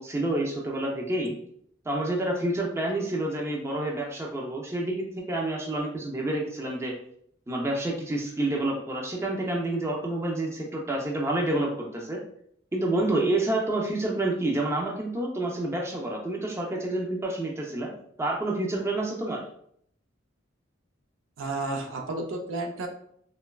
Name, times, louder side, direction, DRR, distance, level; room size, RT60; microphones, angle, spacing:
voice 1, 0.0-1.3 1.9-7.0 7.5-12.2 12.7-17.9 18.2-19.4, right 1 dB, 15° right, -1 dB, 0.4 m, -28 dB
voice 2, 21.4-22.9, right 2 dB, 90° right, 3 dB, 0.5 m, -32 dB
2.9 x 2.2 x 2.2 m, 0.67 s
head